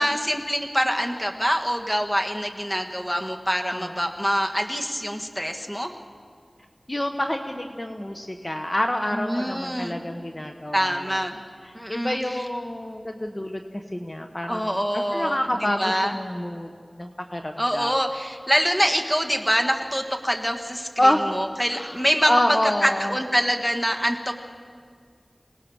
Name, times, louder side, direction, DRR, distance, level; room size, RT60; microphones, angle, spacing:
voice 1, 0.0-5.9 9.1-10.0 10.7-11.3 11.7-12.5 14.5-16.1 17.6-24.3, equal, 10° left, 4 dB, 1.5 m, -25 dB
voice 2, 6.9-11.2 11.9-14.6 15.1-16.7 17.0-17.9 21.0-21.4 21.7-22.0 22.3-23.1, left 1 dB, 30° left, 5 dB, 1.0 m, -27 dB
26.0 x 18.5 x 6.3 m, 2.1 s
wide cardioid pair, 60°, 0 cm